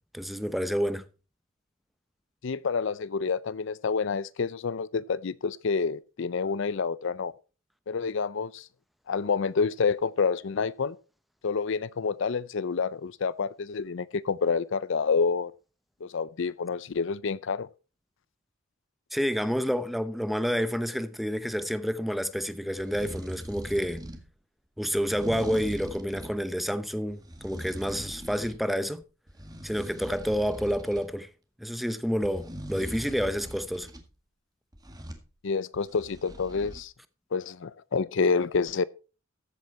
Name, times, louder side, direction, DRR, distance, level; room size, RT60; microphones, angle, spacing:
voice 1, 0.1-1.0 19.1-24.0 24.8-29.0 29.6-31.3 31.6-33.9, equal, ahead, 0.8 m, -29 dB
voice 2, 2.4-7.3 7.9-8.7 9.1-11.0 11.4-15.5 16.0-17.7 35.4-36.9 37.3-38.8, left 5 dB, 65° left, 0.5 m, -28 dB
sound 1, 22.7-24.3 25.0-26.4 27.1-28.6 29.0-31.1 32.2-34.0 34.7-35.3 35.7-36.8, equal, 20° right, 1.9 m, -41 dB
14.5 x 8.1 x 4.2 m
head